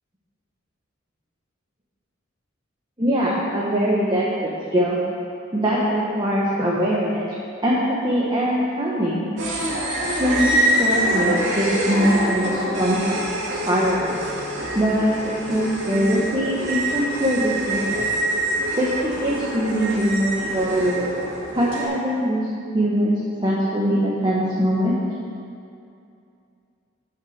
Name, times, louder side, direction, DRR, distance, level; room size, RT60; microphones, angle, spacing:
voice 1, 3.0-5.0 5.5-7.3 7.6-9.2 10.2-13.0 13.7-14.2 14.7-18.1 18.8-21.0 21.5-22.5 22.7-23.1 23.4-24.9, equal, 25° right, -6 dB, 1.2 m, -22 dB
sound 1, 9.4-21.8, right 1 dB, 65° right, 2.1 m, -25 dB
9.9 x 6.6 x 6.5 m, 2.5 s
head